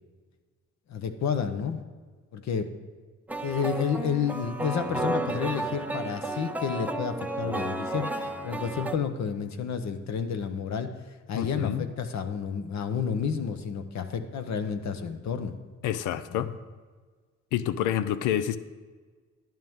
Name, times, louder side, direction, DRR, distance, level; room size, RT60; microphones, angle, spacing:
voice 1, 0.9-1.8 2.3-2.7 3.4-10.9 11.3-15.5 16.3-16.5 18.0-18.2, left 6 dB, 65° left, 9 dB, 1.0 m, -30 dB
sound 1, 3.3-9.0, right 2 dB, 5° right, 0.6 m, -32 dB
voice 2, 11.3-11.9 15.8-16.5 17.5-18.6, left 11 dB, 90° left, 14 dB, 0.6 m, -28 dB
10.5 x 10.5 x 3.7 m, 1.4 s
cardioid pair, 90°, 30 cm